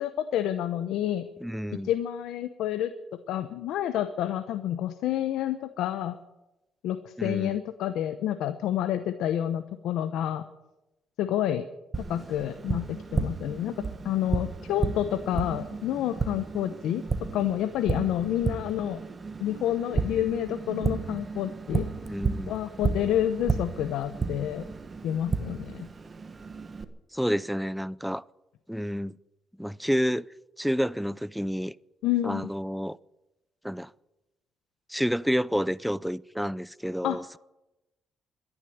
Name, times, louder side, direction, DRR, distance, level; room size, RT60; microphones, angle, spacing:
voice 1, 0.0-1.3 1.8-2.9 3.3-6.2 6.8-10.4 11.2-11.6 12.1-13.7 14.0-17.0 17.3-19.0 19.4-21.9 22.5-24.7 25.0-25.9 32.0-32.5 37.0-37.2, left 11 dB, 85° left, 0.8 m, -29 dB
voice 2, 1.4-1.9 7.2-7.6 22.0-22.5 27.1-28.2 28.7-29.1 29.6-30.3 30.6-31.7 32.2-33.0 33.6-33.9 34.9-37.4, equal, ahead, 0.4 m, -29 dB
Tap, 11.9-26.8, right 4 dB, 35° right, 1.3 m, -33 dB
13.0 x 11.0 x 9.9 m
cardioid pair, 90°, 0 cm